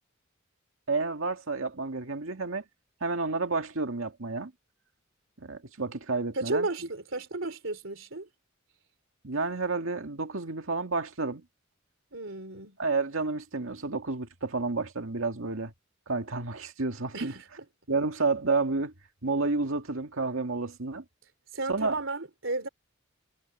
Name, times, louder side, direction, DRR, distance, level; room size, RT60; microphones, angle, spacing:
voice 1, 0.9-2.6 3.0-4.5 5.4-6.7 9.2-11.4 12.8-15.7 16.1-17.3 17.9-18.9 19.2-21.0 21.7-22.0, right 3 dB, 85° right, 2.1 m, -30 dB
voice 2, 6.3-8.3 12.1-12.8 17.1-17.4 21.5-22.7, right 2 dB, 70° right, 3.7 m, -33 dB
head